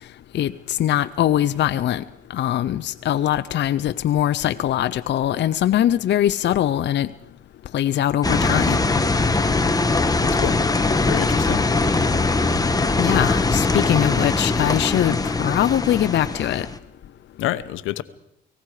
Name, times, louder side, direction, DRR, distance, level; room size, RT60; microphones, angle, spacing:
voice 1, 0.3-2.0 2.3-7.1 7.7-8.8 13.0-16.7, left 11 dB, 60° left, 11 dB, 0.7 m, -22 dB
sound 1, 8.2-16.8, left 3 dB, 20° left, 1.3 m, -21 dB
voice 2, 10.2-10.6 10.9-11.6 17.4-18.0, left 14 dB, 85° left, 13 dB, 0.9 m, -27 dB
29.0 x 19.0 x 4.9 m, 0.79 s
cardioid pair, 90°, 20 cm